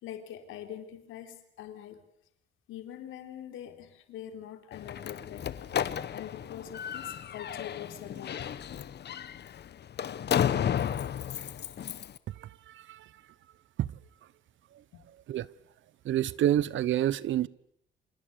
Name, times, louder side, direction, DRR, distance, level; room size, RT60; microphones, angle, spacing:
voice 1, 0.0-2.0 2.7-5.6 5.8-8.5, left 10 dB, 90° left, 3.7 m, -44 dB
Slam, 4.7-12.2, left 9 dB, 55° left, 1.3 m, -33 dB
voice 2, 12.4-13.1 13.8-13.9 15.3-15.5 16.0-17.5, right 12 dB, 75° right, 1.1 m, -28 dB
29.0 x 26.0 x 6.9 m
cardioid pair, 90°, 20 cm